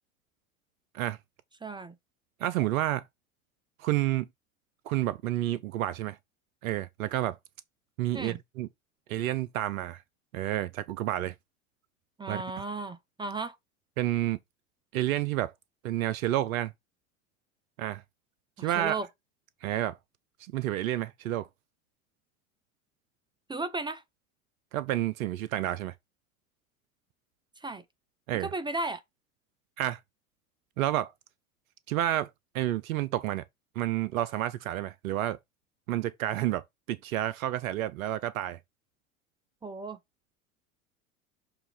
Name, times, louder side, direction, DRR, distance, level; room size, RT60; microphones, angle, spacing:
voice 1, 1.6-1.9 8.1-8.4 12.2-13.6 18.6-19.1 23.5-24.0 27.6-27.8 28.4-29.0 39.6-40.0, right 3 dB, 10° right, 0.6 m, -35 dB
voice 2, 2.4-3.0 3.8-4.3 4.9-6.2 6.6-7.4 8.0-8.7 9.1-10.0 10.3-11.3 12.3-12.4 14.0-14.4 14.9-15.5 15.8-16.7 17.8-18.0 18.6-19.0 19.6-20.0 20.5-21.5 24.7-25.9 28.3-28.5 29.8-30.0 30.8-31.1 31.9-32.3 32.5-33.4 33.8-35.4 35.9-38.6, right 13 dB, 75° right, 0.7 m, -30 dB
6.8 x 2.9 x 5.4 m
hypercardioid pair, 85°, 42 cm